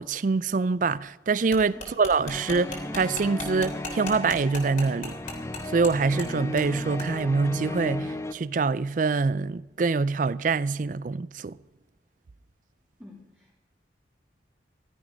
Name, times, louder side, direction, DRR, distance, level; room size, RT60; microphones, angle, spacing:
voice 1, 0.0-5.2 5.7-11.6, right 4 dB, 45° right, 0.4 m, -25 dB
sound 1, 1.5-5.9 6.2-6.3 6.6-6.7 7.0-7.1, left 3 dB, 45° left, 3.1 m, -37 dB
sound 2, 2.3-8.3, left 1 dB, 15° left, 0.5 m, -35 dB
voice 2, 13.0-13.5, left 1 dB, 10° right, 2.8 m, -48 dB
15.5 x 12.5 x 5.1 m
head